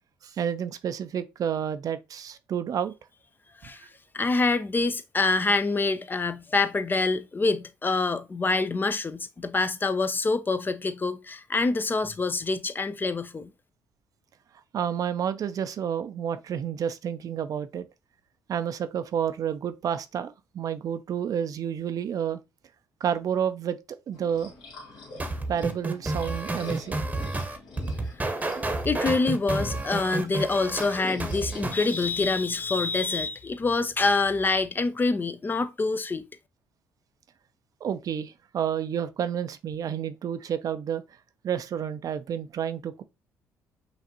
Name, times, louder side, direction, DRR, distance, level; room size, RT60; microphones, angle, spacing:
voice 1, 0.2-2.9 14.7-17.9 18.5-22.4 23.0-23.8 24.1-24.5 25.5-27.0 28.6-28.7 37.8-41.0 41.4-43.0, right 8 dB, 55° right, 0.5 m, -30 dB
voice 2, 4.1-13.5 28.8-36.3, left 3 dB, 25° left, 0.4 m, -26 dB
sound 1, 24.1-32.6, left 3 dB, 70° left, 1.7 m, -46 dB
sound 2, 25.2-31.8, right 2 dB, 20° right, 0.9 m, -30 dB
5.9 x 2.5 x 2.8 m
supercardioid pair, 60°, 7 cm